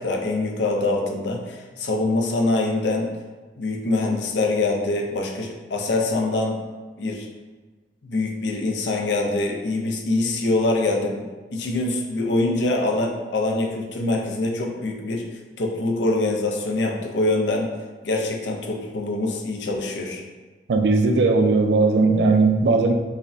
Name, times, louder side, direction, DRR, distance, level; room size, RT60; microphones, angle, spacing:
voice 1, 0.0-3.1 3.6-6.6 7.0-7.3 8.0-15.3 15.6-17.7 18.0-20.2, left 2 dB, 90° left, 2 dB, 0.5 m, -24 dB
voice 2, 20.7-22.9, right 3 dB, 70° right, 5 dB, 0.4 m, -18 dB
4.8 x 2.1 x 2.6 m, 1.3 s
head